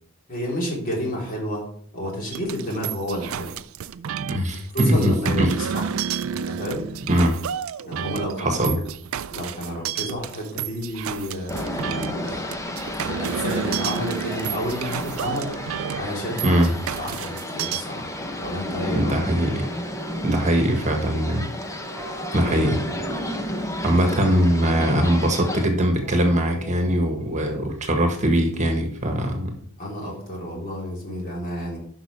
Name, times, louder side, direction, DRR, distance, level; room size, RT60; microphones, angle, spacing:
voice 1, 0.3-1.6 1.9-3.5 4.7-5.5 5.7-5.9 6.3-6.9 7.8-8.6 9.3-12.4 13.0-15.5 16.0-16.6 17.0-19.1 22.3-22.6 24.0-24.1 29.8-31.8, equal, 45° left, -3 dB, 3.7 m, -30 dB
sound 1, 2.3-17.8, right 8 dB, 70° right, 0.4 m, -31 dB
voice 2, 4.3-5.5 7.1-7.4 8.4-8.8 16.4-16.7 18.9-19.7 20.2-21.5 22.3-22.8 23.8-29.5, equal, 35° right, 4 dB, 1.5 m, -21 dB
sound 2, 11.5-25.7, left 1 dB, 15° left, 0.8 m, -32 dB
sound 3, 19.1-28.8, right 4 dB, 10° right, 3.8 m, -42 dB
11.5 x 5.9 x 3.3 m, 0.62 s
head